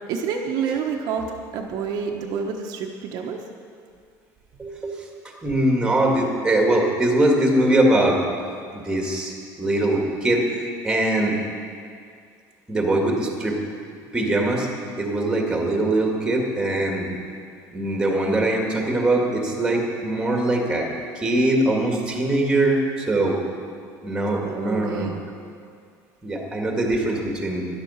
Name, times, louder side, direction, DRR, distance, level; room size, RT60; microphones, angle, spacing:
voice 1, 0.1-3.4 24.4-25.2, right 6 dB, 55° right, 1 dB, 1.1 m, -28 dB
voice 2, 4.6-5.1 5.4-8.2 8.7-11.4 12.7-13.6 14.1-14.7 15.0-17.1 17.7-20.9 21.2-23.4 24.0-25.1 26.2-27.7, right 1 dB, 10° right, 0 dB, 1.9 m, -22 dB
13.0 x 11.5 x 5.7 m, 2.2 s
cardioid pair, 160°, 8 cm